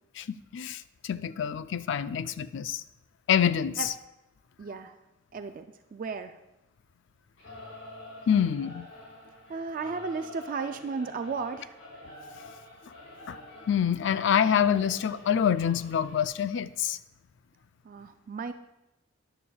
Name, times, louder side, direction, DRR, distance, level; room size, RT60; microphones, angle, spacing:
voice 1, 0.2-2.8 3.3-3.8 8.3-8.9 13.3-13.4 13.7-17.0, left 8 dB, 60° left, 14 dB, 0.4 m, -26 dB
voice 2, 4.6-5.0 5.3-5.7 5.9-6.4 9.5-11.8 17.8-18.5, right 4 dB, 40° right, 8 dB, 0.4 m, -34 dB
Singing / Musical instrument, 7.4-16.3, left 1 dB, 75° left, 4.0 m, -47 dB
13.5 x 10.0 x 2.3 m, 0.94 s
head